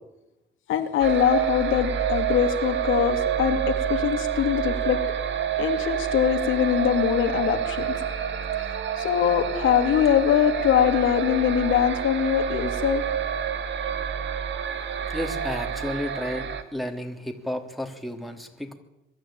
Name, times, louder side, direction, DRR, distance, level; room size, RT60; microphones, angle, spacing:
voice 1, 0.7-5.0 5.6-8.1 9.0-13.0, left 9 dB, 85° left, 6 dB, 2.6 m, -23 dB
sound 1, 1.0-16.6, right 8 dB, 65° right, 2.3 m, -28 dB
voice 2, 15.1-18.8, left 1 dB, ahead, 4 dB, 3.2 m, -32 dB
23.0 x 13.0 x 8.9 m, 0.93 s
cardioid pair, 90°, 20 cm